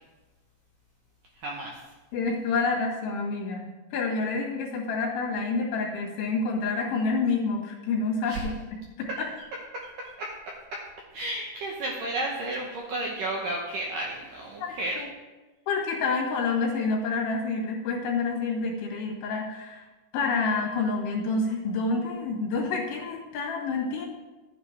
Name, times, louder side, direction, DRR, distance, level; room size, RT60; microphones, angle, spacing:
voice 1, 1.4-1.8 8.3-8.5 9.2-9.3 9.8-10.3 11.1-15.0, right 1 dB, 75° right, -2 dB, 2.0 m, -32 dB
voice 2, 2.1-9.3 14.6-15.1 15.7-19.9 20.1-24.1, left 4 dB, 85° left, -3 dB, 4.6 m, -28 dB
12.5 x 10.0 x 3.4 m, 1.2 s
omnidirectional pair, 5.2 m